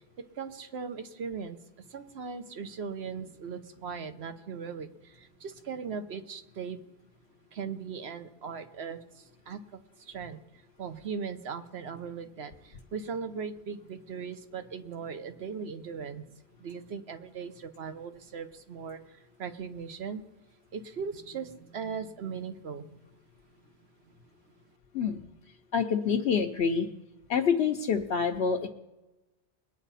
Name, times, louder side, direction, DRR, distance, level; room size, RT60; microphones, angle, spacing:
voice 1, 0.4-1.6 1.9-4.9 5.4-6.8 7.5-9.0 9.5-9.6 10.1-10.4 10.8-16.2 16.6-19.0 19.4-20.2 20.7-23.0, right 6 dB, 70° right, 9 dB, 1.2 m, -38 dB
voice 2, 25.7-26.9 27.3-28.7, left 6 dB, 75° left, 2 dB, 1.1 m, -26 dB
21.5 x 9.1 x 4.1 m, 1.0 s
omnidirectional pair, 1.1 m